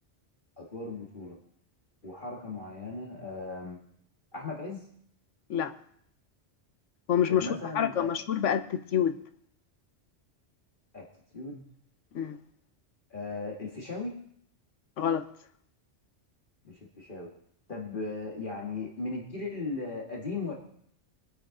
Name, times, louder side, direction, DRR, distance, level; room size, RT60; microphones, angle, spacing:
voice 1, 0.6-1.4 2.0-3.8 4.3-4.8 7.3-8.1 10.9-11.0 11.3-11.6 13.1-14.1 16.6-17.3 17.7-20.5, left 3 dB, 45° left, -2 dB, 2.0 m, -37 dB
voice 2, 7.1-7.5 7.7-9.2 12.1-12.4 15.0-15.3, left 9 dB, 80° left, 10 dB, 1.2 m, -27 dB
23.0 x 8.1 x 3.8 m, 0.67 s
omnidirectional pair, 1.2 m